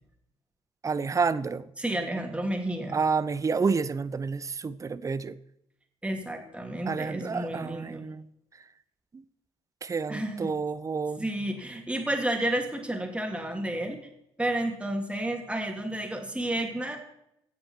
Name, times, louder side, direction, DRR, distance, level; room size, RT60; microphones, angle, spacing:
voice 1, 0.8-1.6 2.9-5.4 6.9-8.2 9.8-11.2, right 5 dB, 25° right, 17 dB, 0.6 m, -29 dB
voice 2, 1.8-3.0 6.0-8.0 10.1-10.5 11.2-14.0 14.4-17.0, right 1 dB, 10° right, 3 dB, 2.9 m, -31 dB
15.5 x 8.4 x 4.5 m, 0.78 s
figure-of-eight pair, 50°, 13 cm